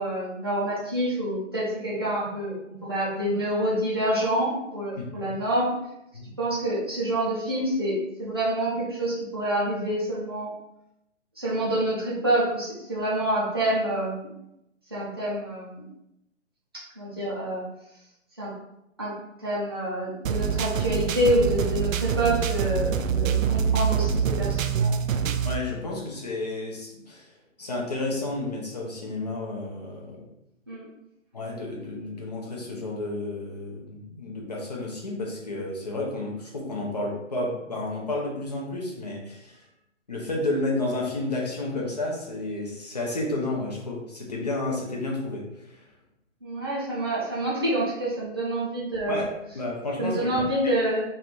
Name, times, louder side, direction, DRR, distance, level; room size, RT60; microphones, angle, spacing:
voice 1, 0.0-5.7 6.4-10.5 11.4-14.3 14.9-15.8 16.7-17.6 18.4-18.5 19.0-19.1 19.4-24.9 30.7-30.9 46.4-49.3 50.0-51.0, right 1 dB, 20° right, -8 dB, 0.6 m, -27 dB
voice 2, 5.0-5.3 6.1-6.3 25.4-27.3 27.6-30.3 31.3-39.6 40.1-45.9 49.1-50.4, left 2 dB, 30° left, -2 dB, 0.8 m, -31 dB
sound 1, 20.3-25.6, right 7 dB, 90° right, 0.5 m, -25 dB
3.3 x 2.6 x 4.4 m, 0.84 s
hypercardioid pair, 180°, 38 cm